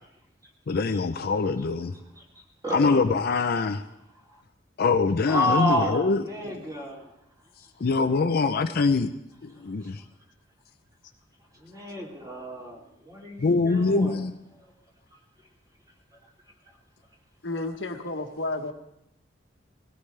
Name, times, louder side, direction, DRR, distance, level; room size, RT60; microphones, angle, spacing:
voice 1, 0.7-1.9 2.7-3.8 4.8-6.6 7.8-9.1 9.4-10.0 13.4-14.4, left 4 dB, 55° left, 8 dB, 0.5 m, -24 dB
voice 2, 2.6-3.0 5.3-7.1 11.6-14.2, equal, 20° right, -3 dB, 2.9 m, -30 dB
voice 3, 17.4-18.7, left 2 dB, 75° left, 3 dB, 1.3 m, -31 dB
20.0 x 17.0 x 3.3 m, 0.84 s
head